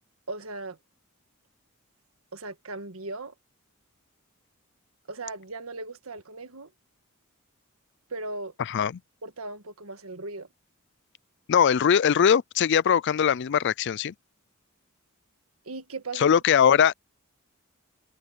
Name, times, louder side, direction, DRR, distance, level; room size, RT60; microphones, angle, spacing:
voice 1, 0.3-0.8 2.3-3.3 5.1-6.7 8.1-8.5 9.2-10.5 15.6-16.3, right 3 dB, 85° right, 1.6 m, -37 dB
voice 2, 8.6-8.9 11.5-14.1 16.2-16.9, left 8 dB, 55° left, 0.4 m, -21 dB
head